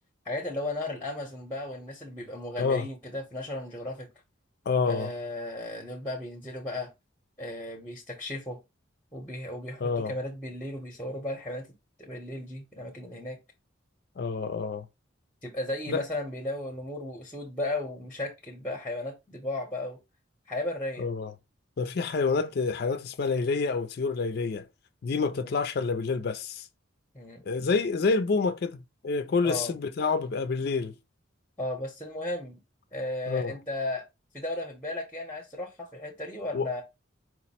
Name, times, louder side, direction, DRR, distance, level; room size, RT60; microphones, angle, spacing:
voice 1, 0.3-4.1 4.9-6.9 7.4-8.6 9.1-11.7 12.0-13.4 15.4-20.0 20.5-21.1 25.4-25.5 27.1-27.4 29.4-29.7 31.6-32.6 32.9-34.0 34.3-36.8, left 1 dB, 10° left, 0.7 m, -35 dB
voice 2, 4.7-5.1 9.8-10.1 14.2-14.9 15.9-16.0 21.0-21.3 21.8-24.7 25.0-26.7 27.4-30.9 33.3-33.6 36.5-36.8, left 4 dB, 50° left, 0.4 m, -28 dB
4.6 x 2.1 x 4.1 m
head